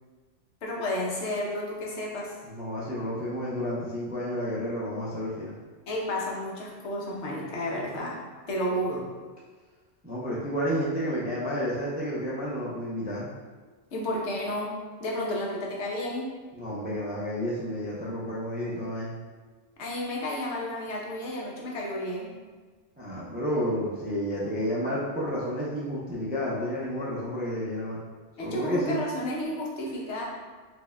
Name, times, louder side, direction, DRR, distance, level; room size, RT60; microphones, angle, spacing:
voice 1, 0.6-2.3 5.9-8.2 8.5-9.0 13.9-16.3 19.8-22.3 28.4-30.2, left 1 dB, 75° left, -3 dB, 1.0 m, -32 dB
voice 2, 2.4-5.5 10.0-13.3 16.5-19.2 23.0-28.0 28.4-29.0, equal, 15° right, -7 dB, 0.3 m, -31 dB
4.2 x 2.7 x 2.2 m, 1.4 s
omnidirectional pair, 1.2 m